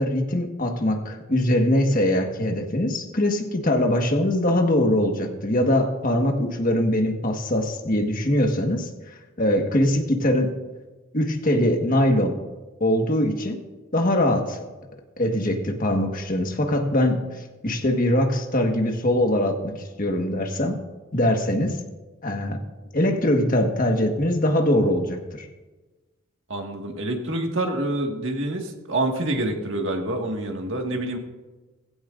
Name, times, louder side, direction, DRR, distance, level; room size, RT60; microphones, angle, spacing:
voice 1, 0.0-8.9 9.4-10.5 11.1-12.4 12.8-13.6 13.9-14.6 15.2-20.8 21.1-21.8 22.2-22.6 22.9-25.5, left 1 dB, 40° left, 3 dB, 1.5 m, -22 dB
voice 2, 26.5-31.2, right 1 dB, 60° right, 2 dB, 1.8 m, -27 dB
16.0 x 16.0 x 2.6 m, 1.2 s
head